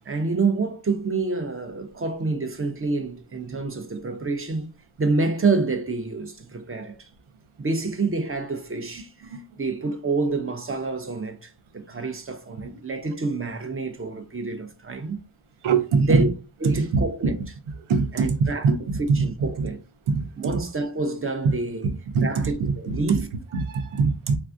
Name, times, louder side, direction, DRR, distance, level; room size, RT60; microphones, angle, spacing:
voice 1, 0.1-4.7 5.0-7.1 7.6-15.2 16.0-16.3 16.6-17.3 18.1-18.7 19.0-19.8 20.4-21.9 22.2-23.3, right 3 dB, 30° right, 0.5 m, -27 dB
voice 2, 15.6-16.2 16.9-17.0 17.9-19.3 19.6-19.7 20.1-20.5 22.1-22.3 23.1-23.2 23.6-24.4, right 4 dB, 80° right, 0.6 m, -22 dB
3.3 x 2.3 x 2.5 m
wide cardioid pair, 105°, 48 cm